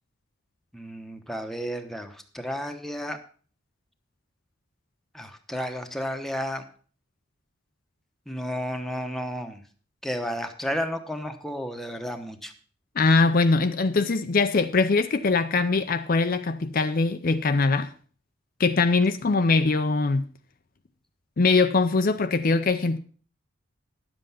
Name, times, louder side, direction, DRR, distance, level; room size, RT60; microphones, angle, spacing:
voice 1, 0.7-3.2 5.1-6.6 8.3-9.6 10.0-12.5, equal, ahead, 1.0 m, -32 dB
voice 2, 13.0-17.9 18.6-20.2 21.4-23.0, left 3 dB, 45° left, 0.5 m, -22 dB
10.5 x 7.7 x 5.7 m
head